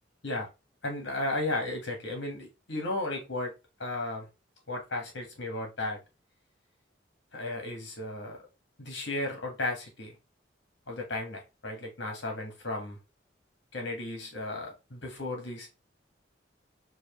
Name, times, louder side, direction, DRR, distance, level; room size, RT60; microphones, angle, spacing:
voice 1, 0.8-3.5 3.8-4.3 4.7-6.0 7.3-8.4 8.8-10.2 10.9-13.0 13.7-15.7, left 2 dB, 65° left, 1.6 m, -34 dB
4.6 x 2.6 x 3.1 m
head